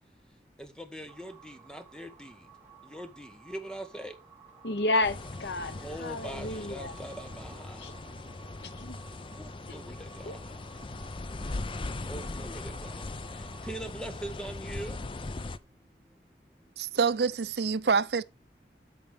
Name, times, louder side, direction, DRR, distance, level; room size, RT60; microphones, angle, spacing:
voice 1, 0.6-2.4 2.9-4.2 5.8-7.8 9.3-10.4 12.1-13.0 13.6-15.0, right 1 dB, 5° left, 1.3 m, -42 dB
sound 1, 1.1-13.7, right 7 dB, 15° right, 2.8 m, -55 dB
voice 2, 4.6-6.9 7.8-7.9 8.8-9.0 10.3-10.4, left 2 dB, 75° left, 1.0 m, -31 dB
sound 2, 5.0-15.6, left 2 dB, 30° left, 0.5 m, -39 dB
voice 3, 16.8-18.2, right 5 dB, 70° right, 0.5 m, -26 dB
13.0 x 4.8 x 3.5 m
head